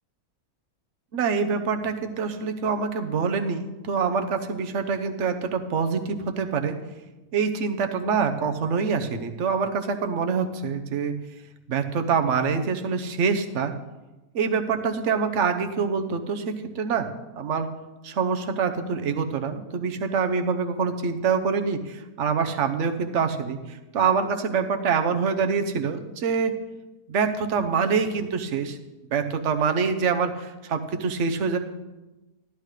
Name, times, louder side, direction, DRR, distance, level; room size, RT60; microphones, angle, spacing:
voice 1, 1.1-6.8 7.3-11.1 11.7-13.7 14.3-17.1 17.3-17.7 18.0-26.5 27.1-28.8 29.1-31.6, right 5 dB, 55° right, 6 dB, 1.1 m, -25 dB
13.0 x 11.5 x 3.3 m, 1.1 s
omnidirectional pair, 1.6 m